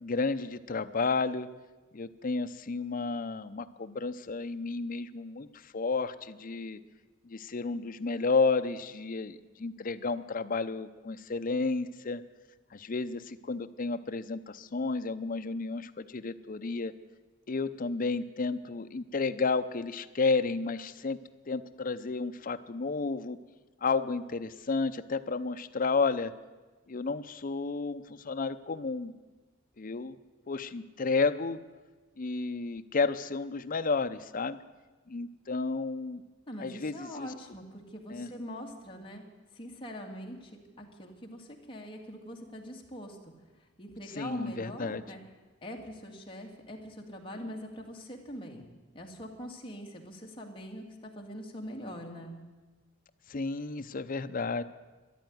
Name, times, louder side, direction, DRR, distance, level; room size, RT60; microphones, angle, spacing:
voice 1, 0.0-1.5 1.9-6.8 7.2-12.2 12.7-16.9 17.5-21.2 21.5-23.4 23.8-26.3 26.9-29.1 29.8-30.2 30.5-31.6 32.2-34.6 35.1-36.2 36.6-37.3 38.1-38.3 44.1-45.0 53.3-54.6, left 4 dB, 45° left, 9 dB, 0.6 m, -32 dB
voice 2, 36.5-39.2 39.5-43.3 43.8-45.2 45.6-48.7 48.9-52.4, equal, 25° left, 0 dB, 2.1 m, -43 dB
13.5 x 10.5 x 9.4 m, 1.3 s
head